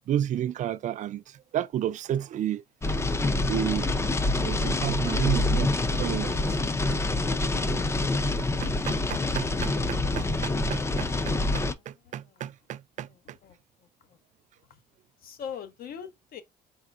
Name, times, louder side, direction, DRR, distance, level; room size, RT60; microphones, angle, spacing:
voice 1, 0.1-2.6 3.5-5.7 6.0-6.9 8.6-13.4, right 10 dB, 45° right, 0.4 m, -32 dB
sound 1, 2.8-11.7, left 2 dB, 15° left, 0.5 m, -26 dB
voice 2, 11.8-12.4 13.1-13.6 14.1-14.2 15.2-16.4, left 7 dB, 60° left, 0.9 m, -42 dB
4.1 x 3.8 x 2.4 m
cardioid pair, 110°, 17 cm